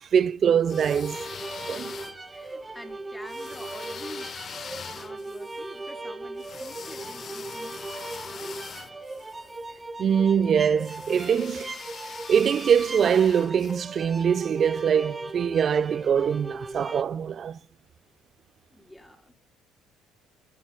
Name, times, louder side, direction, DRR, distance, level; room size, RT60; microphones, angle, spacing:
voice 1, 0.1-1.2 1.7-1.9 10.0-11.7 12.3-17.6, right 7 dB, 50° right, 0.7 m, -23 dB
sound 1, 0.6-2.5 3.3-9.6 10.8-13.8, left 7 dB, 45° left, 1.1 m, -43 dB
sound 2, 0.7-17.0, right 2 dB, 20° right, 1.9 m, -38 dB
voice 2, 2.3-8.6 18.7-19.3, left 1 dB, 10° left, 4.5 m, -47 dB
23.0 x 18.5 x 2.2 m
supercardioid pair, 70°, 0 cm